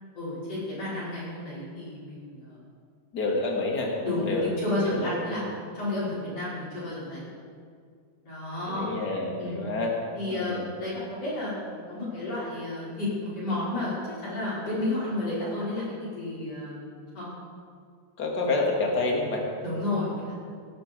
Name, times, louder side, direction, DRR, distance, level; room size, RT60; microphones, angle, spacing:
voice 1, 0.1-2.6 4.0-5.4 5.7-7.3 8.2-8.9 9.4-9.6 10.1-17.3 19.6-20.3, left 2 dB, 55° left, -9 dB, 6.3 m, -31 dB
voice 2, 3.1-4.4 4.8-5.5 8.7-9.9 10.3-10.7 18.2-19.4, left 2 dB, 35° left, 0 dB, 2.5 m, -28 dB
19.5 x 11.0 x 5.3 m, 2.2 s
omnidirectional pair, 3.4 m